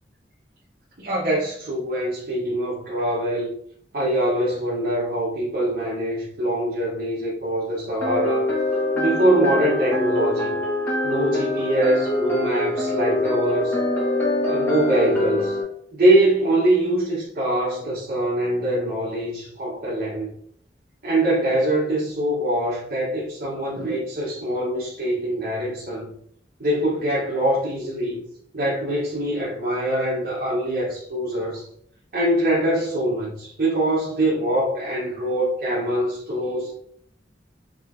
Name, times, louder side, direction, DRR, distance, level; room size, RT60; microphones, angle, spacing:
voice 1, 1.0-3.5 3.9-8.5 8.9-10.6 11.0-13.8 14.5-15.6 15.9-20.3 21.0-26.1 26.6-28.2 28.5-31.7 32.1-36.7, right 1 dB, 55° right, -6 dB, 1.1 m, -23 dB
sound 1, 8.0-15.6, left 2 dB, 10° left, 1.3 m, -24 dB
5.3 x 2.9 x 2.6 m, 0.66 s
head